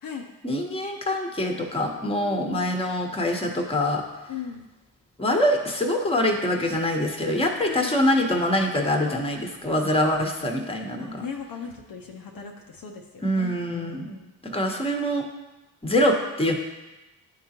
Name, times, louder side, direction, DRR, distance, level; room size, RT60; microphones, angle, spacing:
voice 1, 0.4-4.0 5.2-11.3 13.2-14.2 14.4-15.3 15.8-16.6, left 1 dB, 15° left, 2 dB, 1.2 m, -24 dB
voice 2, 2.2-2.8 4.3-4.7 7.7-7.9 11.0-14.3, left 6 dB, 55° left, 1 dB, 0.8 m, -38 dB
10.5 x 3.7 x 2.9 m, 1.1 s
hypercardioid pair, 45°, 42 cm